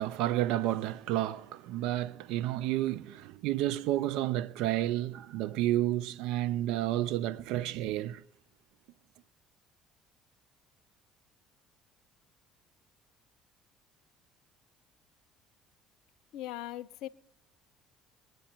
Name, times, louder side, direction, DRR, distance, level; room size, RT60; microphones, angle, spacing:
voice 1, 0.0-8.2, right 14 dB, 75° right, 0.4 m, -31 dB
voice 2, 16.3-17.1, left 14 dB, 70° left, 0.5 m, -39 dB
22.0 x 9.2 x 4.4 m
hypercardioid pair, 65°, 0 cm